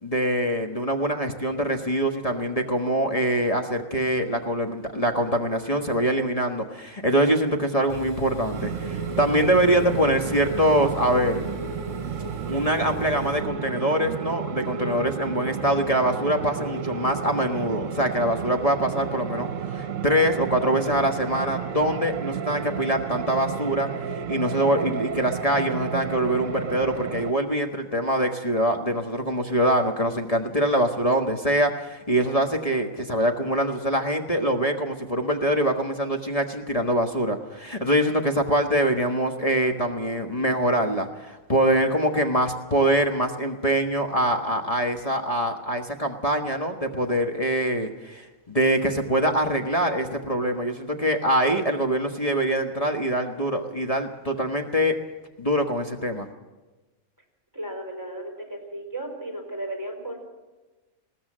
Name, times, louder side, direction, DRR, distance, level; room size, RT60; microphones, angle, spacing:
voice 1, 0.0-11.4 12.5-23.9 24.3-55.0 55.4-56.3, right 1 dB, 25° left, 3 dB, 1.4 m, -24 dB
sound 1, 7.9-13.4, right 3 dB, 35° right, 4.2 m, -39 dB
sound 2, 8.5-27.3, right 7 dB, 70° right, 1.3 m, -32 dB
voice 2, 57.5-60.2, right 1 dB, 15° right, 2 dB, 4.6 m, -35 dB
20.5 x 17.5 x 7.5 m, 1.2 s
omnidirectional pair, 1.4 m